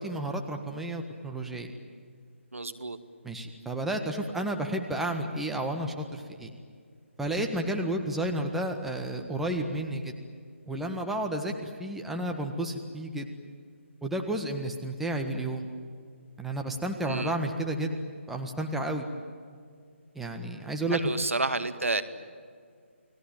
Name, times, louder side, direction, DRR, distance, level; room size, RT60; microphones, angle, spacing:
voice 1, 0.0-1.7 3.2-6.5 7.2-10.1 10.7-13.3 14.0-15.7 16.4-17.9 18.3-19.1 20.1-21.1, right 1 dB, 5° right, 3 dB, 1.6 m, -31 dB
voice 2, 2.5-3.0 17.0-17.4 20.9-22.0, right 3 dB, 85° right, 11 dB, 2.1 m, -30 dB
30.0 x 20.0 x 9.1 m, 2.1 s
figure-of-eight pair, 155°, 7 cm